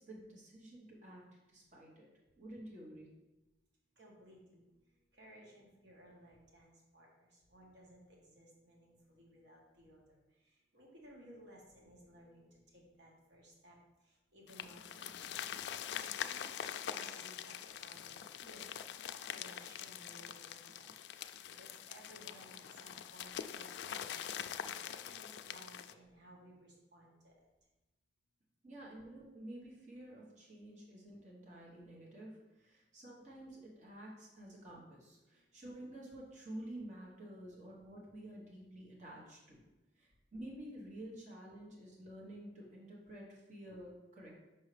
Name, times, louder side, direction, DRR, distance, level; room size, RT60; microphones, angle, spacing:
voice 1, 0.1-1.2 1.5-2.1 2.4-3.1 28.6-39.6 40.0-44.3, right 1 dB, 45° right, -3 dB, 1.3 m, -50 dB
voice 2, 4.0-4.6 5.1-13.8 14.0-15.4 16.0-20.9 21.4-27.3 35.3-35.4, right 1 dB, 75° right, -2 dB, 1.4 m, -59 dB
sound 1, 14.5-25.9, left 9 dB, 70° left, 0.3 m, -44 dB
5.6 x 5.5 x 3.3 m, 1.0 s
head